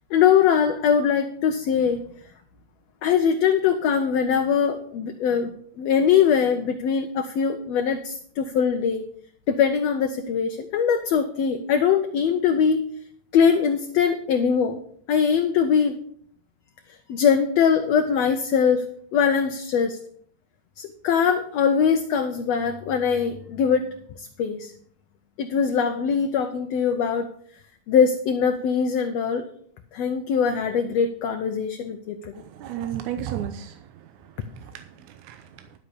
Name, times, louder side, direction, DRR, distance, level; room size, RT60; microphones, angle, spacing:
voice 1, 0.1-2.0 3.0-9.1 9.5-12.8 13.3-14.8 15.1-16.0 17.1-18.9 19.1-20.0 20.8-23.9 24.2-24.7 25.4-27.3 27.9-29.5 29.9-32.3, left 7 dB, 70° left, 6 dB, 1.7 m, -22 dB
voice 2, 32.5-33.8 34.6-35.5, right 10 dB, 85° right, 7 dB, 2.2 m, -33 dB
12.0 x 5.9 x 6.8 m, 0.62 s
omnidirectional pair, 3.4 m